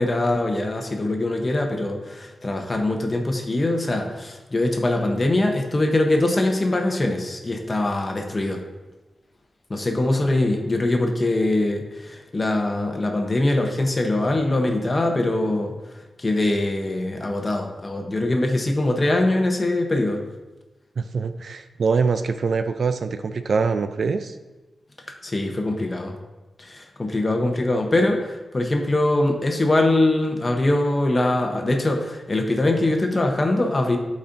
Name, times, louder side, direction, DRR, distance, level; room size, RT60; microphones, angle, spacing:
voice 1, 0.0-8.6 9.7-15.7 16.2-20.2 25.2-26.1 26.6-34.0, left 2 dB, 25° left, 3 dB, 0.8 m, -22 dB
voice 2, 21.0-24.3, right 5 dB, 55° right, 10 dB, 0.3 m, -24 dB
12.0 x 4.2 x 2.6 m, 1.1 s
wide cardioid pair, 160°, 0 cm